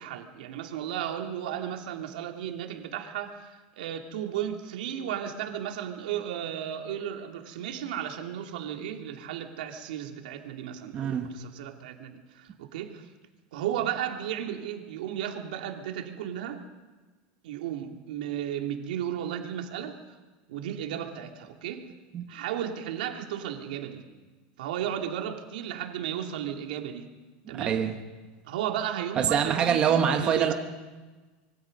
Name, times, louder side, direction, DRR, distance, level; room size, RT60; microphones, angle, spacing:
voice 1, 0.0-13.0 13.5-16.6 17.4-20.0 20.5-21.9 22.3-24.0 24.6-27.1 27.5-27.8 28.5-30.5, right 10 dB, 80° right, 2.8 m, -34 dB
voice 2, 10.9-11.3 22.1-22.2 27.6-27.9 29.1-30.5, right 8 dB, 20° right, 1.3 m, -24 dB
26.5 x 23.5 x 5.4 m
supercardioid pair, 175°, 5 cm